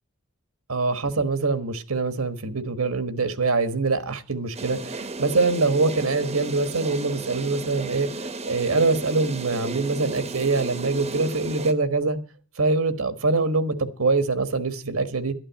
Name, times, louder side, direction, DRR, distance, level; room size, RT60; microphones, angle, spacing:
voice 1, 0.7-12.2 12.6-15.3, right 3 dB, 80° right, 1.4 m, -24 dB
sound 1, 4.5-11.7, right 2 dB, 30° right, 0.9 m, -34 dB
12.5 x 8.9 x 7.4 m
head